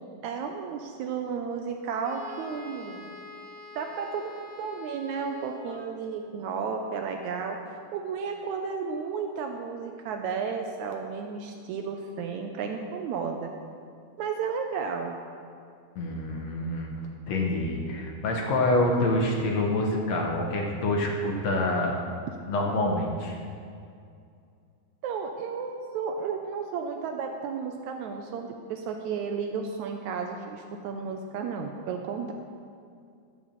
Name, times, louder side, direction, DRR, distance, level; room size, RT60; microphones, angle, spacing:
voice 1, 0.0-3.1 3.8-7.6 7.9-13.5 14.2-15.2 25.0-32.3, right 5 dB, 75° right, 4 dB, 1.8 m, -33 dB
Wind instrument woodwind instrument, 2.0-6.1, left 3 dB, 25° left, 0.9 m, -46 dB
voice 2, 16.0-16.9 17.3-21.9 22.5-23.4, left 1 dB, 65° left, 0 dB, 2.1 m, -26 dB
13.0 x 5.5 x 7.3 m, 2.4 s
omnidirectional pair, 3.8 m